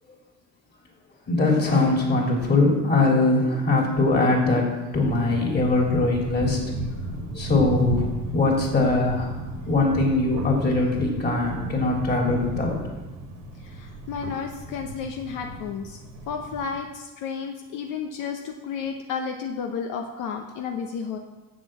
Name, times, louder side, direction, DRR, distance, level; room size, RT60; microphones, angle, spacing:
voice 1, 1.3-4.7 4.9-6.6 7.3-8.1 8.3-9.3 9.7-12.8, left 2 dB, 30° left, -1 dB, 3.1 m, -21 dB
sound 1, 5.0-16.8, right 1 dB, 90° right, 2.3 m, -33 dB
voice 2, 13.6-16.0 16.3-21.2, left 6 dB, 75° left, 4 dB, 0.9 m, -32 dB
7.5 x 7.3 x 7.5 m, 1.1 s
cardioid pair, 120°, 32 cm